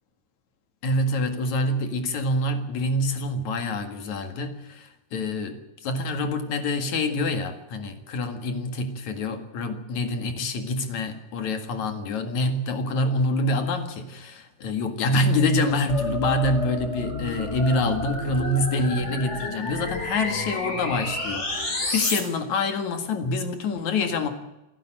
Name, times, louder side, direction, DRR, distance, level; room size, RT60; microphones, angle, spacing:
voice 1, 0.8-24.3, left 2 dB, 50° left, 7 dB, 2.6 m, -26 dB
sound 1, 15.9-22.2, left 1 dB, 20° left, 2.7 m, -30 dB
28.5 x 11.0 x 9.0 m, 0.96 s
omnidirectional pair, 5.3 m